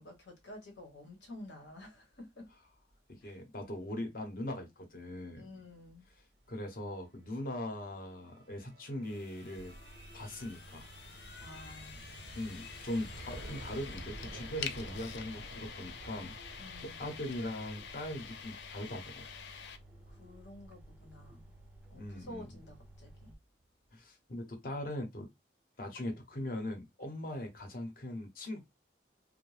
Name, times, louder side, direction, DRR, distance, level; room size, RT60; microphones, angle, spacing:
voice 1, 0.0-2.5 3.2-3.4 5.4-6.1 11.4-12.0 16.6-17.0 20.1-21.5 21.9-23.4, left 1 dB, 90° left, 1.1 m, -51 dB
voice 2, 3.2-5.5 6.5-9.7 10.1-10.9 12.4-19.3 21.9-22.5 23.9-25.3 25.8-28.6, left 1 dB, 50° left, 0.8 m, -40 dB
sound 1, 6.9-20.4, right 1 dB, 85° right, 0.7 m, -52 dB
sound 2, 9.0-19.8, left 7 dB, 70° left, 0.4 m, -47 dB
sound 3, 9.6-23.3, right 1 dB, 10° right, 0.3 m, -55 dB
2.6 x 2.1 x 3.2 m
head